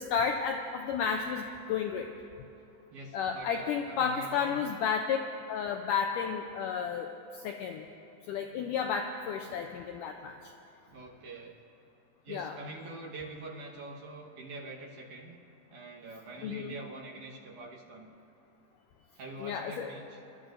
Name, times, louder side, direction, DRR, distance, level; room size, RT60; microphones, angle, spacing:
voice 1, 0.0-1.4 1.7-2.1 3.1-5.2 5.5-7.1 7.4-7.8 8.3-10.4 12.3-12.6 16.4-16.7 19.4-19.9, left 6 dB, 85° left, 3 dB, 1.9 m, -32 dB
voice 2, 2.9-4.6 10.9-11.6 12.2-15.4 15.7-18.1 19.2-20.2, right 2 dB, 65° right, -2 dB, 2.5 m, -45 dB
27.5 x 13.0 x 2.6 m, 2.9 s
omnidirectional pair, 4.3 m